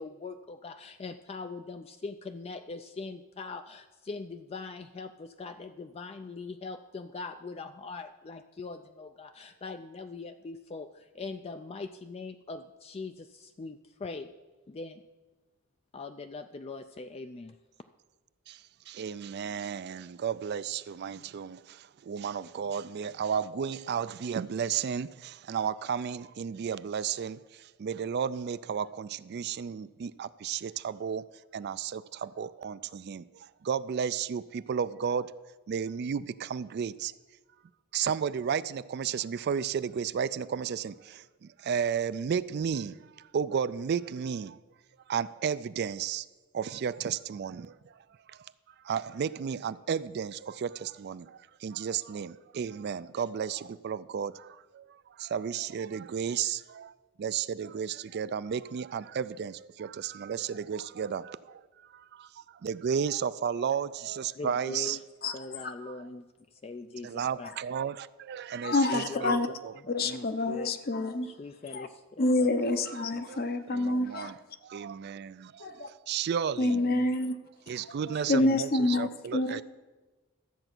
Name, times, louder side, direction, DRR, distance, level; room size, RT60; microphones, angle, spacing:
voice 1, 0.0-14.3 14.7-15.0 15.9-17.6 64.4-65.0 65.3-66.2 66.5-67.5 69.1-69.4 70.0-70.7 71.2-72.5 76.8-77.1 78.1-78.6, left 3 dB, 30° left, 8 dB, 0.3 m, -41 dB
voice 2, 18.5-31.2 31.5-35.3 35.7-37.1 37.9-44.6 45.1-46.3 46.5-48.5 48.8-65.0 65.8-66.1 67.0-69.4 69.6-69.7 72.9-73.4 73.7-76.8 77.7-79.6, right 7 dB, 50° right, 16 dB, 0.3 m, -33 dB
voice 3, 68.6-69.5 69.9-71.3 71.7-71.9 72.2-74.3 75.6-75.9 76.6-77.4 78.3-79.6, left 2 dB, 45° left, 9 dB, 0.7 m, -27 dB
13.0 x 7.8 x 6.0 m, 1.2 s
head